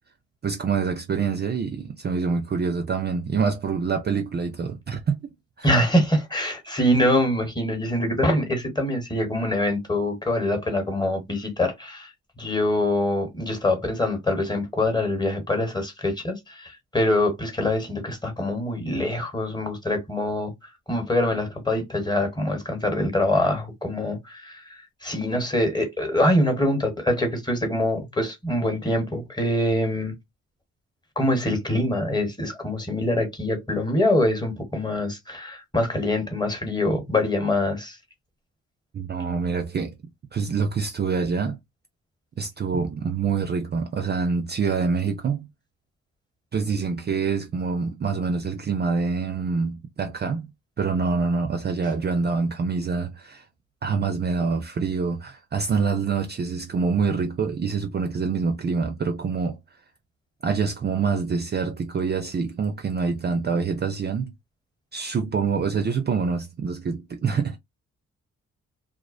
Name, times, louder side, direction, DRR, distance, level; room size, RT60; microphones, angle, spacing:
voice 1, 0.4-5.3 5.6-5.7 38.9-39.9 40.3-41.6 42.4-45.5 46.5-50.5 50.8-53.4 53.8-59.6 60.4-64.3 64.9-67.6, right 5 dB, 35° right, 0.4 m, -26 dB
voice 2, 5.6-12.1 12.4-20.5 20.9-24.6 25.0-30.2 31.2-38.0, left 1 dB, 15° left, 1.1 m, -24 dB
2.4 x 2.0 x 2.5 m
cardioid pair, 60°, 31 cm